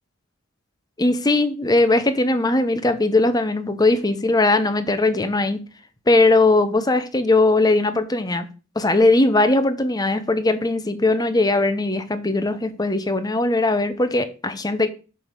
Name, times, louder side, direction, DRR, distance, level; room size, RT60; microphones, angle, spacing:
voice 1, 1.0-5.6 6.1-8.5 8.8-14.9, left 2 dB, 20° left, 0.8 m, -19 dB
7.0 x 3.5 x 6.3 m
head